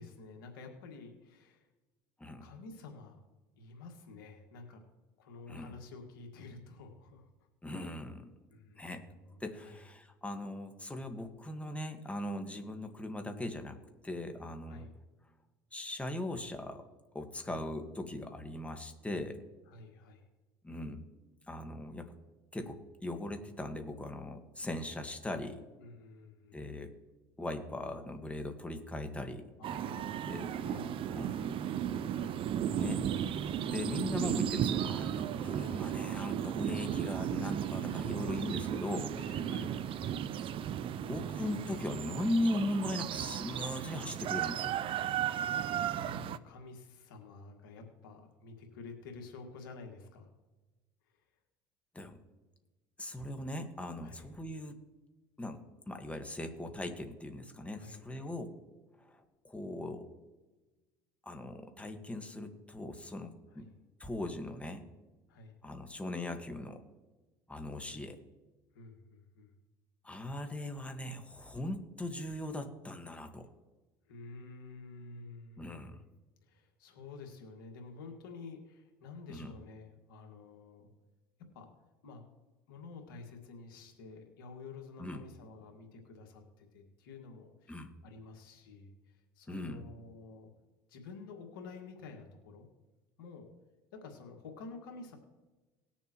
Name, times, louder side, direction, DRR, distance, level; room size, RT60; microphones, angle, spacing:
voice 1, 0.0-1.7 2.4-3.2 3.6-4.8 5.2-7.5 8.5-9.8 14.6-14.9 17.3-17.6 19.7-20.3 25.8-26.6 29.6-30.3 30.6-32.5 37.7-38.2 39.1-40.0 45.5-50.3 51.1-51.2 54.0-54.3 57.8-58.3 63.5-63.7 65.3-65.5 67.9-68.0 68.7-69.5 74.1-76.1 76.4-80.9 81.5-81.7 82.0-82.2 82.7-90.5 90.9-92.7 93.2-93.5 93.9-95.2, left 4 dB, 90° left, 3 dB, 1.8 m, -50 dB
voice 2, 7.6-8.3 8.8-9.0 9.4-13.8 14.0-14.9 15.7-16.8 17.1-19.4 20.6-21.0 21.5-22.1 22.5-25.6 26.5-27.0 27.4-29.5 30.3-30.5 31.1-31.3 32.7-39.2 40.9-44.8 51.9-52.2 53.0-54.8 55.4-58.6 59.0-60.1 61.2-63.7 64.0-64.8 65.6-66.8 67.5-68.2 70.0-73.5 75.6-76.0 79.3-79.5 85.0-85.2 87.7-87.9 89.5-89.8, left 1 dB, 10° left, 5 dB, 1.6 m, -39 dB
sound 1, 29.6-46.4, right 9 dB, 50° right, 0.6 m, -35 dB
19.5 x 7.1 x 3.1 m, 1.2 s
hypercardioid pair, 75°, 11 cm